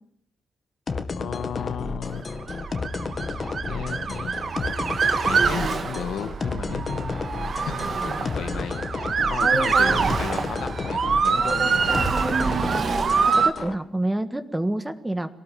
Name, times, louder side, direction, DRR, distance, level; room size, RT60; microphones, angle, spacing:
sound 1, 0.9-13.7, left 4 dB, 35° left, 2.0 m, -32 dB
voice 1, 1.1-2.3 3.4-4.6 5.3-7.3 7.7-12.3, left 8 dB, 80° left, 10 dB, 1.8 m, -35 dB
Motor vehicle (road) / Siren, 2.4-13.5, right 5 dB, 45° right, 1.9 m, -25 dB
voice 2, 9.2-10.0 11.3-12.5 13.3-15.3, right 1 dB, 10° right, 10 dB, 1.6 m, -28 dB
24.0 x 18.5 x 7.6 m, 0.71 s
cardioid pair, 135°, 0 cm